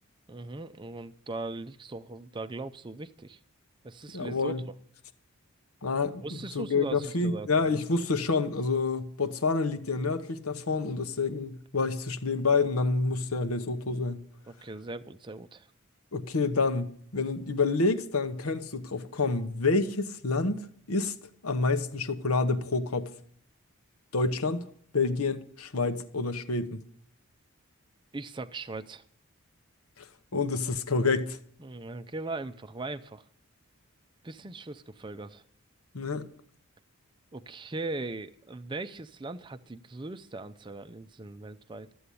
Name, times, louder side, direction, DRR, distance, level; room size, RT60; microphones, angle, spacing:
voice 1, 0.3-3.4 3.8-4.8 6.2-7.5 14.5-15.7 28.1-29.0 31.6-33.2 34.2-35.4 37.3-41.9, right 2 dB, 20° right, 0.5 m, -39 dB
voice 2, 4.1-4.6 5.8-14.2 16.1-21.1 21.4-23.1 24.1-24.6 24.9-26.8 30.3-31.4 35.9-36.2, left 3 dB, 80° left, 1.0 m, -28 dB
13.0 x 7.9 x 8.4 m
head